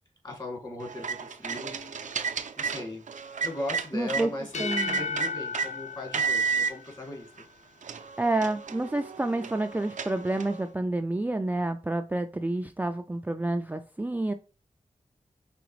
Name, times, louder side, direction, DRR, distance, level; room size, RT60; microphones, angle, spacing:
voice 1, 0.2-2.3 2.6-3.0 3.4-7.3, left 1 dB, 35° left, 0 dB, 2.2 m, -38 dB
sound 1, 0.8-4.3 4.7-5.7 6.1-6.7 7.4-7.5 7.8-10.6, right 5 dB, 80° right, 0.5 m, -32 dB
voice 2, 3.9-4.3 4.6-5.0 8.2-14.3, right 2 dB, 15° right, 6 dB, 0.4 m, -29 dB
sound 2, 4.4-7.2, left 5 dB, 65° left, 0.5 m, -35 dB
4.9 x 3.5 x 3.0 m, 0.34 s
wide cardioid pair, 60°, 13 cm